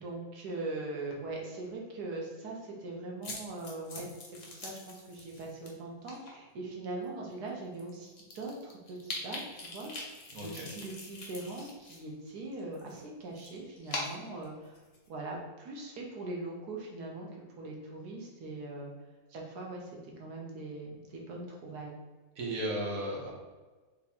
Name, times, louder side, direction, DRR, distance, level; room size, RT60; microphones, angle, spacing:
voice 1, 0.0-4.1 4.4-10.1 10.4-14.8 15.1-17.3 17.6-18.9 19.3-22.0, right 2 dB, 85° right, -1 dB, 1.5 m, -41 dB
sound 1, 3.2-5.7 6.1-6.3 7.0-7.1 7.5-7.6 7.8-12.0 12.3-15.1, left 2 dB, 40° left, 0.6 m, -43 dB
voice 2, 10.3-10.7 22.4-23.3, right 1 dB, 65° right, -3 dB, 1.4 m, -35 dB
3.6 x 2.8 x 4.2 m, 1.3 s
omnidirectional pair, 1.6 m